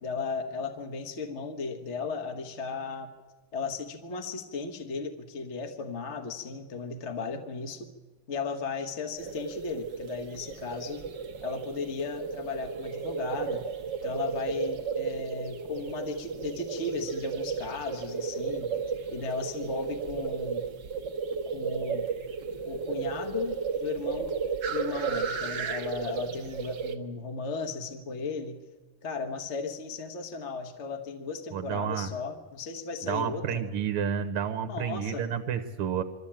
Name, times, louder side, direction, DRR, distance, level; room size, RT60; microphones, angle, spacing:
voice 1, 0.0-3.1 3.5-7.9 8.3-11.0 11.4-13.6 14.0-18.7 19.1-20.6 21.5-22.0 22.6-24.3 24.7-28.6 29.0-33.6 34.7-35.2, left 4 dB, 40° left, 5 dB, 1.3 m, -35 dB
sound 1, 9.2-26.9, right 5 dB, 55° right, 1.6 m, -34 dB
voice 2, 31.5-32.1 33.0-36.0, right 8 dB, 90° right, 9 dB, 1.9 m, -30 dB
23.0 x 14.0 x 8.7 m, 1.3 s
omnidirectional pair, 2.4 m